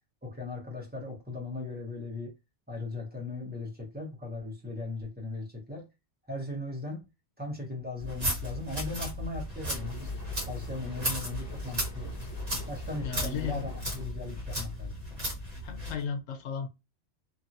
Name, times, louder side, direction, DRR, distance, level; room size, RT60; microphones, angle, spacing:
voice 1, 0.2-2.3 2.7-5.9 6.3-7.0 7.4-10.1 10.4-12.1 12.7-15.3, left 2 dB, 10° right, 0.9 m, -38 dB
sound 1, 8.0-16.0, equal, 35° right, 1.1 m, -35 dB
sound 2, 9.6-14.0, right 1 dB, 35° left, 1.1 m, -47 dB
voice 2, 13.0-13.7 15.6-16.7, left 7 dB, 80° left, 0.9 m, -34 dB
2.8 x 2.5 x 2.6 m
omnidirectional pair, 1.2 m